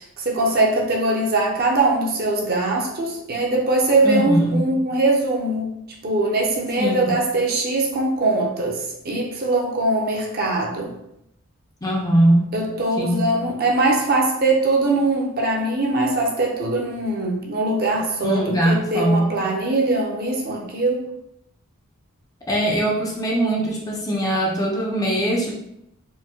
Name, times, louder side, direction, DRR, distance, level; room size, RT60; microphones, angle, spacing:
voice 1, 0.0-5.7 6.0-10.9 12.5-21.0, right 2 dB, 45° right, 0 dB, 0.6 m, -21 dB
voice 2, 4.0-4.6 6.8-7.1 11.8-12.5 13.0-13.3 18.2-19.4 22.5-25.6, right 1 dB, 15° left, -2 dB, 0.4 m, -21 dB
4.4 x 2.1 x 2.8 m, 0.78 s
head